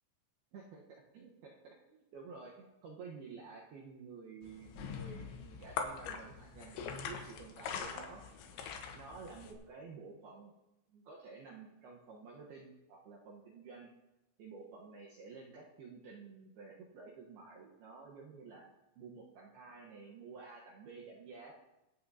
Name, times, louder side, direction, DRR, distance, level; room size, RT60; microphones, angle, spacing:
voice 1, 0.5-8.2 8.6-10.5 10.9-13.9 14.4-18.7 19.0-21.5, right 4 dB, 70° right, -3 dB, 2.5 m, -52 dB
sound 1, 4.4-9.5, left 6 dB, 75° left, 3.2 m, -43 dB
23.5 x 8.6 x 2.8 m, 0.95 s
omnidirectional pair, 5.8 m